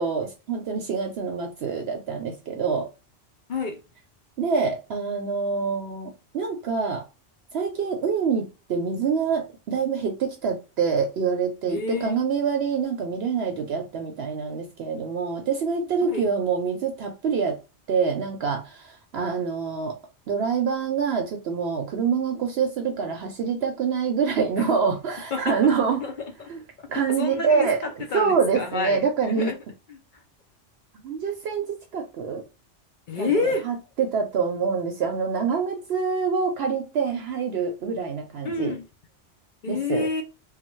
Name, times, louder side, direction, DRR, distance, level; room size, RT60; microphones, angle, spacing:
voice 1, 0.0-2.9 4.4-7.0 7.5-17.6 17.9-20.0 20.3-26.0 26.5-26.6 26.9-27.8 28.1-29.5 31.0-31.7 31.9-32.4 33.2-38.7 39.7-40.1, right 5 dB, 65° right, 0.8 m, -26 dB
voice 2, 3.5-3.8 11.7-12.2 16.0-16.3 24.6-24.7 25.3-25.6 26.0-26.1 26.4-26.5 26.8-29.6 29.9-30.0 33.1-33.7 38.4-38.9 39.6-40.2, left 4 dB, 55° left, 0.5 m, -29 dB
3.1 x 2.2 x 3.0 m
omnidirectional pair, 1.2 m